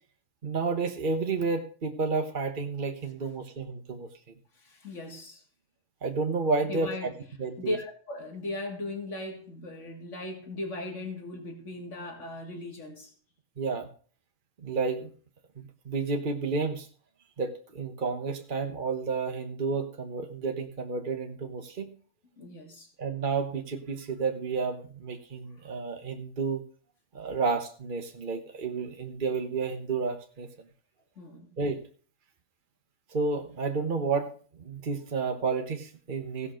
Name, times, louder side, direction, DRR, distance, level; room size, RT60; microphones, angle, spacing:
voice 1, 0.4-4.1 6.0-7.1 7.4-7.7 13.6-13.9 14.6-15.1 15.6-16.9 17.4-21.9 23.0-26.6 27.1-30.5 31.6-31.8 33.1-34.3 34.6-36.5, right 4 dB, 40° right, 1.2 m, -31 dB
voice 2, 4.5-5.4 6.6-7.1 7.6-13.1 22.4-22.9 31.2-31.5, left 2 dB, 65° left, 3.0 m, -37 dB
16.5 x 5.6 x 6.4 m
omnidirectional pair, 1.4 m